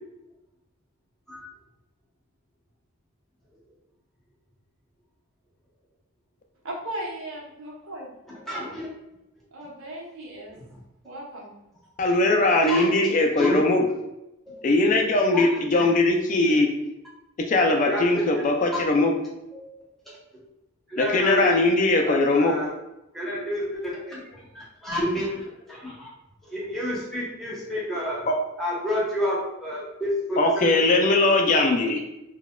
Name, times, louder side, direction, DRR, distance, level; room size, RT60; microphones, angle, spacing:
voice 1, 6.6-8.1 9.5-10.5 11.0-11.5, right 1 dB, 85° right, -3 dB, 0.9 m, -36 dB
voice 2, 8.4-8.9 12.7-12.9 13.4-13.6 14.5-14.6 15.3-15.9 17.9-18.4 18.7-18.8 19.5-19.7 20.9-21.6 22.1-22.7 23.1-25.4 25.7-26.1 26.5-28.3 28.6-30.6, equal, ahead, -7 dB, 0.9 m, -29 dB
voice 3, 12.0-13.8 14.6-16.7 17.5-19.1 21.0-22.5 28.3-28.4 30.4-32.0, left 2 dB, 35° left, 2 dB, 0.3 m, -20 dB
3.9 x 2.2 x 2.2 m, 0.92 s
head